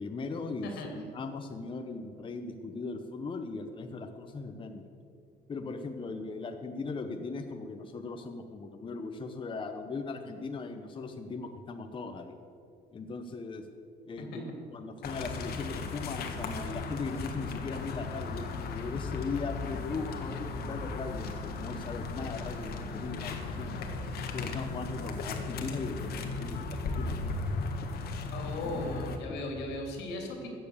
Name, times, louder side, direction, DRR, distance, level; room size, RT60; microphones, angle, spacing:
voice 1, 0.0-4.9 5.5-12.3 12.9-13.6 14.1-14.4 14.7-23.8 24.3-27.4 28.6-28.9 29.3-29.4, left 4 dB, 30° left, 6 dB, 0.8 m, -38 dB
sound 1, 15.0-29.2, left 3 dB, 70° left, 1.5 m, -36 dB
voice 2, 28.3-30.6, left 2 dB, 85° left, 2 dB, 2.9 m, -37 dB
14.0 x 7.7 x 7.0 m, 2.4 s
cardioid pair, 110°, 17 cm